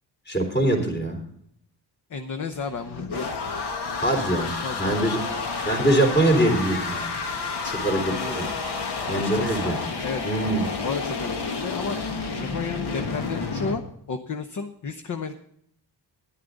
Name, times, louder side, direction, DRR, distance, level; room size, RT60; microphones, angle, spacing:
voice 1, 0.3-1.2 4.0-4.5 4.8-5.2 5.7-7.1 7.8-8.0 8.3-8.5 9.1-9.8 10.2-10.7, right 1 dB, 25° left, 2 dB, 3.5 m, -23 dB
voice 2, 2.1-3.3 3.6-5.8 7.6-8.5 8.9-10.2 10.8-12.0 12.3-13.8 14.1-15.4, left 5 dB, 45° left, 8 dB, 0.9 m, -34 dB
sound 1, 2.5-13.8, left 4 dB, 65° left, 1.8 m, -30 dB
13.5 x 11.5 x 3.9 m, 0.71 s
wide cardioid pair, 175°, 43 cm